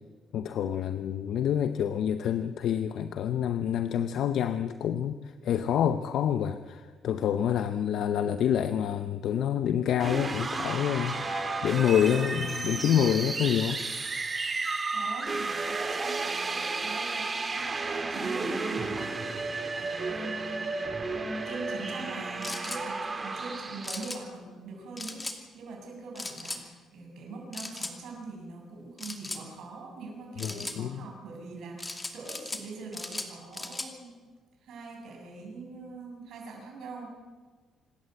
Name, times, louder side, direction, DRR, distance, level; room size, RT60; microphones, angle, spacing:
voice 1, 0.3-13.8 30.4-31.1, left 9 dB, 75° left, 10 dB, 0.8 m, -27 dB
sound 1, 10.0-24.1, right 3 dB, 30° right, 2.5 m, -33 dB
voice 2, 14.9-20.9 21.5-34.2 34.6-37.1, right 3 dB, 75° right, 1 dB, 7.1 m, -43 dB
sound 2, 22.4-22.8 23.8-24.2 25.0-25.4 26.2-26.6 27.5-27.9 29.0-29.4 30.4-30.8 31.8-32.6 32.9-33.9, left 2 dB, 20° left, 2.5 m, -37 dB
26.5 x 13.0 x 7.9 m, 1.5 s
cardioid pair, 90°, 0 cm